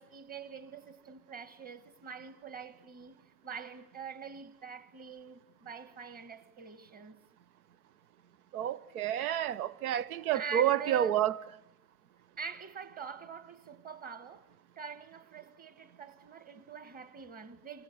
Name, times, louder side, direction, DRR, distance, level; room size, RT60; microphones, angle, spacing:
voice 1, 0.0-7.2 9.3-9.4 10.3-11.1 12.4-14.5 14.8-17.8, right 6 dB, 20° right, 1.6 m, -44 dB
voice 2, 8.5-11.3, right 11 dB, 75° right, 1.1 m, -29 dB
28.5 x 24.5 x 8.0 m
hypercardioid pair, 120°, 44 cm